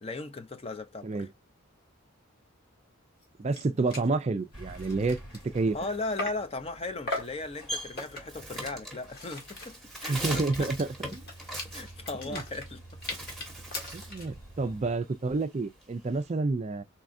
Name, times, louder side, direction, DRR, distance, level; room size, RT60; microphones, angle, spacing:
voice 1, 0.0-1.3 5.7-10.7 11.7-12.8 13.1-13.2, left 3 dB, 25° left, 0.6 m, -37 dB
sound 1, 3.2-3.3 3.5-3.6 3.9-4.1 4.6-6.5 7.1-7.4 8.0-8.4 8.9-14.3, left 2 dB, 45° left, 1.7 m, -40 dB
voice 2, 3.4-5.2 5.5-5.8 10.1-11.2 12.2-12.4 13.9-16.8, right 3 dB, 30° right, 0.4 m, -29 dB
sound 2, 4.5-14.9, right 1 dB, 75° left, 3.1 m, -50 dB
Bird, 7.1-12.6 12.9-14.2 14.6-16.3, right 1 dB, ahead, 1.1 m, -40 dB
4.1 x 3.7 x 2.6 m
head